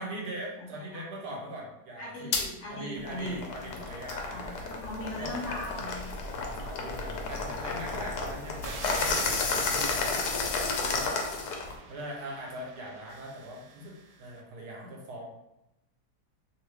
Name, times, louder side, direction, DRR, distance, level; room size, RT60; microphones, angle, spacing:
voice 1, 0.0-2.4 2.7-4.8 5.2-5.6 6.3-10.3 10.7-11.2 11.9-15.3, right 1 dB, 70° right, -2 dB, 1.3 m, -41 dB
voice 2, 0.6-1.0 2.0-3.9 4.2-6.1 14.7-14.9, left 1 dB, 55° left, -6 dB, 0.9 m, -39 dB
sound 1, 2.3-2.5 3.0-11.8, left 4 dB, 75° left, 1.1 m, -32 dB
sound 2, 8.6-14.3, right 4 dB, 85° right, 1.2 m, -46 dB
3.0 x 2.5 x 3.2 m, 0.88 s
omnidirectional pair, 1.8 m